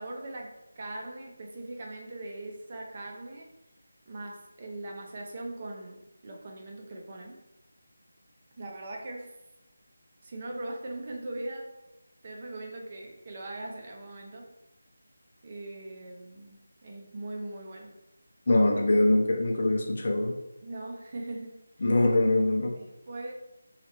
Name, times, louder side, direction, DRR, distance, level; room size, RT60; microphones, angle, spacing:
voice 1, 0.0-3.5 4.1-7.4 8.6-9.4 10.2-11.8 12.2-14.5 15.4-18.0 20.6-21.9 22.7-23.3, right 2 dB, 35° right, 0 dB, 0.5 m, -40 dB
voice 2, 18.5-20.4 21.8-22.8, left 2 dB, 50° left, 1 dB, 0.6 m, -23 dB
3.1 x 2.4 x 3.0 m, 0.95 s
figure-of-eight pair, 165°, 0 cm